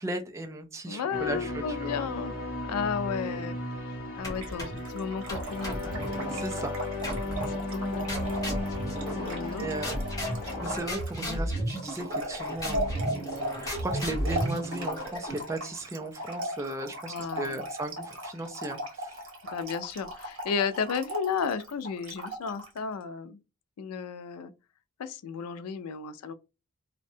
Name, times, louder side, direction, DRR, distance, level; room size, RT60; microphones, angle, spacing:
voice 1, 0.0-2.0 6.3-6.7 9.1-9.3 9.6-10.0 10.6-13.1 13.6-19.2, right 1 dB, 15° right, 0.3 m, -36 dB
voice 2, 0.9-2.3 2.6-3.6 4.2-6.0 7.4-8.1 9.1-9.7 12.7-12.9 17.1-17.6 19.4-23.4 23.8-24.5 25.0-26.3, left 6 dB, 90° left, 0.4 m, -33 dB
sound 1, 1.1-10.8, left 1 dB, 45° left, 0.8 m, -35 dB
sound 2, 4.2-4.9 5.3-6.5 7.0-7.6 8.1-9.5 9.8-15.5, right 1 dB, 15° left, 1.0 m, -34 dB
Trickle dribble / Fill (with liquid), 4.3-22.8, right 1 dB, 60° right, 0.8 m, -38 dB
2.6 x 2.1 x 2.6 m
head